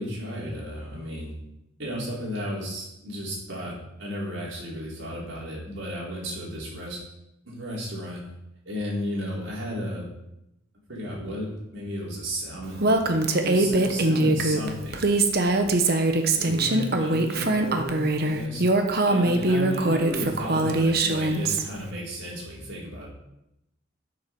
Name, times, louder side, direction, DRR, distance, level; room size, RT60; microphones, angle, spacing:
voice 1, 0.0-1.3 1.8-7.0 7.4-8.2 8.6-10.1 10.9-12.9 13.4-15.0 15.3-15.7 16.3-18.6 19.0-23.1, equal, 75° right, -4 dB, 4.5 m, -33 dB
Female speech woman speaking, 12.8-21.6, right 2 dB, 50° right, 1.0 m, -22 dB
13.0 x 7.3 x 4.7 m, 0.86 s
head